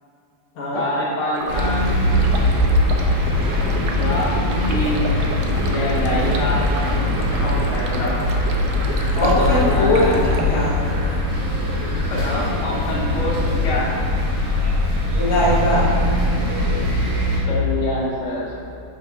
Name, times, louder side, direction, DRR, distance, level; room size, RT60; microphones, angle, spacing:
voice 1, 0.7-1.9 3.6-4.3 4.6-5.1 5.7-6.7 7.4-8.1 9.2-10.2 12.1-13.9 17.5-18.5, left 1 dB, 80° left, -7 dB, 0.6 m, -25 dB
Stream, 1.3-10.4, right 4 dB, 80° right, 2.4 m, -32 dB
sound 1, 1.5-17.4, left 1 dB, 60° right, 1.1 m, -21 dB
voice 2, 3.2-3.7 6.2-6.4 9.1-11.0 15.1-15.9, left 1 dB, 60° left, -7 dB, 2.1 m, -21 dB
7.2 x 3.5 x 5.7 m, 2.5 s
omnidirectional pair, 4.5 m